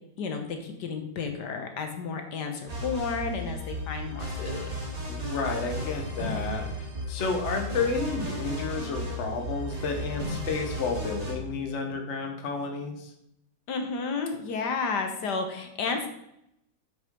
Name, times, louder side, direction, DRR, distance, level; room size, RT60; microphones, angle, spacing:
voice 1, 0.2-4.8 13.7-16.1, left 4 dB, 80° left, 5 dB, 1.7 m, -32 dB
sound 1, 2.7-11.3, equal, 20° right, 2.2 m, -34 dB
voice 2, 5.1-13.1, left 4 dB, 45° left, 4 dB, 1.4 m, -31 dB
7.8 x 6.2 x 5.2 m, 0.80 s
omnidirectional pair, 1.8 m